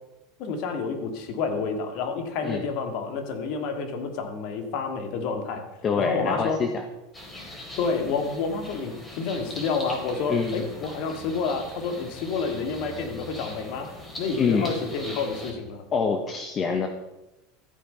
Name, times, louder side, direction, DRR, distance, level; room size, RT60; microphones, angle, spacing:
voice 1, 0.4-5.6 6.0-6.6 7.8-13.9 14.2-15.8, left 4 dB, 60° left, 5 dB, 2.4 m, -29 dB
voice 2, 5.8-6.8 10.3-10.6 14.4-14.7 15.9-16.9, left 5 dB, 35° left, 4 dB, 1.4 m, -25 dB
sound 1, 7.1-15.5, left 1 dB, 15° left, 3.9 m, -41 dB
14.0 x 8.6 x 5.6 m, 0.96 s
hypercardioid pair, 100°, 0 cm